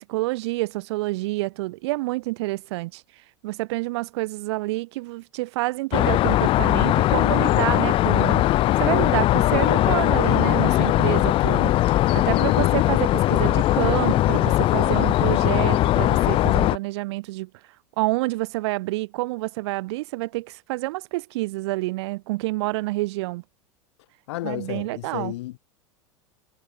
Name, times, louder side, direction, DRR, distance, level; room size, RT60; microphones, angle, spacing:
voice 1, 0.1-3.0 3.4-8.5 8.8-17.5 18.0-23.4 24.4-25.4, right 21 dB, 55° right, 3.8 m, -28 dB
sound 1, 5.9-16.8, left 15 dB, 30° left, 0.6 m, -20 dB
voice 2, 12.3-12.9 24.3-25.7, left 17 dB, 55° left, 5.4 m, -32 dB
figure-of-eight pair, 85°, 17 cm